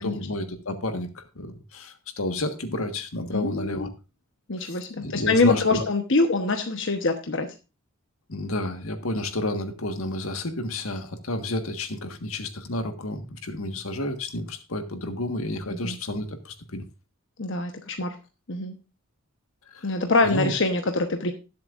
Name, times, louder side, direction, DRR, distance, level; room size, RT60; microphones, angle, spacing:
voice 1, 0.0-3.9 4.6-5.9 8.3-16.8 19.7-19.9 20.2-20.5, left 1 dB, 85° left, 7 dB, 1.5 m, -30 dB
voice 2, 3.3-3.9 4.5-7.5 15.7-16.0 17.4-18.1 18.5-18.8 19.8-21.3, left 3 dB, 60° left, 5 dB, 1.1 m, -24 dB
19.5 x 7.6 x 2.5 m, 0.29 s
head